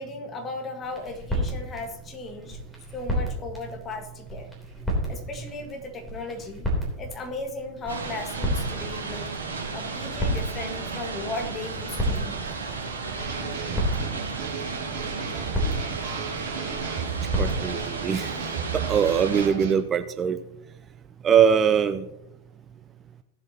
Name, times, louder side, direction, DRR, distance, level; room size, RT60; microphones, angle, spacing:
voice 1, 0.0-2.6 2.9-4.5 5.1-6.6 7.0-9.3 9.7-12.4, left 2 dB, 25° left, 4 dB, 1.7 m, -36 dB
sound 1, 0.8-18.1, equal, ahead, 3.3 m, -33 dB
sound 2, 7.9-19.5, right 4 dB, 70° right, 2.4 m, -34 dB
sound 3, 13.2-19.7, right 6 dB, 45° right, 2.3 m, -34 dB
voice 2, 17.4-18.3 18.7-20.4 21.2-22.0, right 7 dB, 25° right, 11 dB, 0.4 m, -22 dB
17.0 x 7.6 x 2.9 m, 0.90 s
figure-of-eight pair, 90°, 0 cm